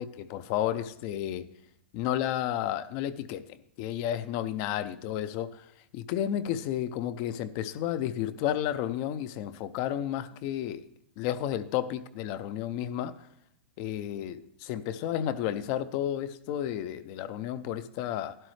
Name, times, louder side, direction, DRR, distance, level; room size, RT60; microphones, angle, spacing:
voice 1, 0.0-1.5 1.9-10.9 11.2-13.1 13.8-18.4, left 11 dB, 35° left, 0.5 m, -32 dB
12.0 x 11.5 x 3.2 m
supercardioid pair, 165°, 7 cm